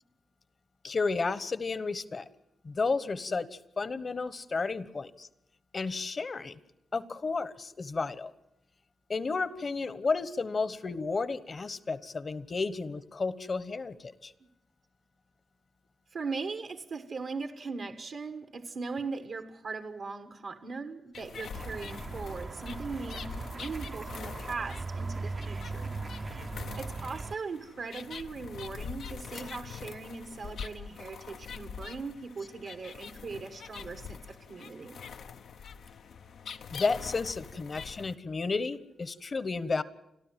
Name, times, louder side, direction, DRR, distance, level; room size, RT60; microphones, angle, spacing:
voice 1, 0.8-2.2 2.6-5.3 5.7-6.5 6.9-8.3 9.1-14.3 36.7-39.8, left 4 dB, 50° left, 15 dB, 1.2 m, -32 dB
voice 2, 16.1-25.9 26.8-35.0, right 4 dB, 70° right, 7 dB, 1.5 m, -39 dB
sound 1, 21.1-38.1, left 6 dB, 75° left, 0.8 m, -44 dB
sound 2, 21.5-27.4, right 3 dB, 45° right, 0.8 m, -39 dB
30.0 x 13.0 x 7.5 m, 0.84 s
supercardioid pair, 45°, 0 cm